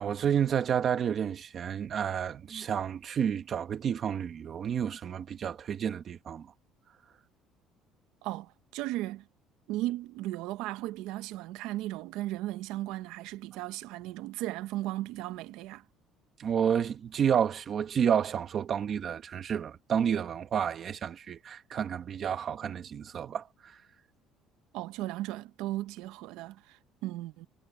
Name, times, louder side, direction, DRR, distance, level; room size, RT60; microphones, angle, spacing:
voice 1, 0.0-6.5 16.4-23.8, right 8 dB, 35° right, 1.6 m, -30 dB
voice 2, 8.2-9.3 9.7-15.8 24.7-27.5, right 16 dB, 75° right, 1.0 m, -36 dB
cardioid pair, 170°, 0 cm